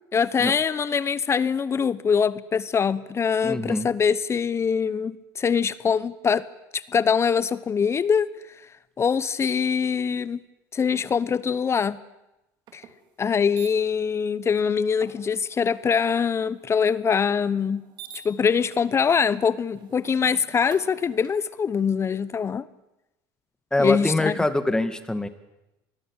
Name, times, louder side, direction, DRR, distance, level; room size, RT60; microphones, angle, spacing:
voice 1, 0.1-6.4 6.7-8.3 9.0-10.4 10.7-12.0 12.7-12.8 13.2-17.8 18.2-22.7 23.8-24.4, left 6 dB, 30° left, 18 dB, 0.9 m, -23 dB
voice 2, 3.4-3.9 23.7-25.3, left 1 dB, 5° left, 11 dB, 2.1 m, -24 dB
sound 1, 12.7-12.9 13.6-13.7 15.0-21.3, right 7 dB, 50° right, 4.0 m, -48 dB
25.5 x 20.5 x 8.2 m, 0.94 s
supercardioid pair, 105°, 10 cm